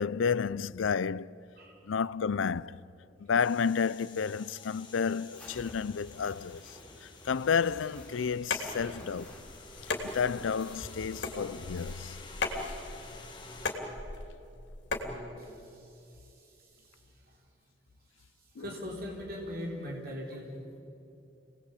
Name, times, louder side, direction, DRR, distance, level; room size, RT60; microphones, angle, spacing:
voice 1, 0.0-1.5 1.8-2.9 3.2-9.3 9.8-12.2 18.6-18.7, left 6 dB, 80° left, 0.5 m, -31 dB
sound 1, 3.4-13.8, left 4 dB, 25° left, 2.2 m, -51 dB
sound 2, 5.3-12.1, left 1 dB, 5° left, 5.2 m, -50 dB
sound 3, 8.4-15.2, left 3 dB, 60° left, 3.0 m, -37 dB
voice 2, 14.9-17.5 18.2-20.8, equal, 50° right, 3.9 m, -42 dB
27.5 x 19.0 x 8.5 m
head